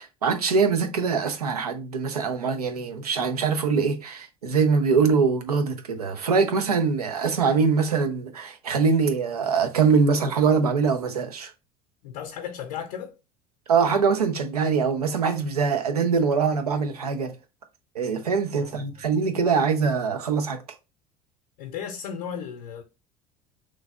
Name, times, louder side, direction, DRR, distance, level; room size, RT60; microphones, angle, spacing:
voice 1, 0.0-11.5 13.7-17.3 17.9-20.6, right 5 dB, 90° right, 0.6 m, -23 dB
voice 2, 12.0-13.1 18.6-19.0 21.6-22.8, left 8 dB, 75° left, 0.6 m, -35 dB
3.2 x 2.5 x 3.5 m
hypercardioid pair, 70°, 19 cm